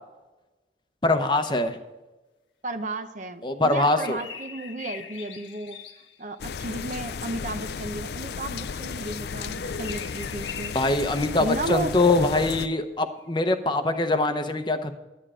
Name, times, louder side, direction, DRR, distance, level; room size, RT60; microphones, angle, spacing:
voice 1, 1.0-1.8 3.4-4.2 10.7-14.9, left 2 dB, 25° left, 7 dB, 0.8 m, -23 dB
voice 2, 2.6-5.8 6.2-10.7 11.4-11.9, right 2 dB, 40° right, 8 dB, 0.8 m, -33 dB
sound 1, 3.7-6.4 9.3-11.7 13.2-13.3 13.9-14.1, left 6 dB, 85° left, 1.2 m, -42 dB
sound 2, 6.4-12.7, left 5 dB, 60° left, 0.4 m, -34 dB
11.0 x 10.0 x 5.0 m, 1.1 s
head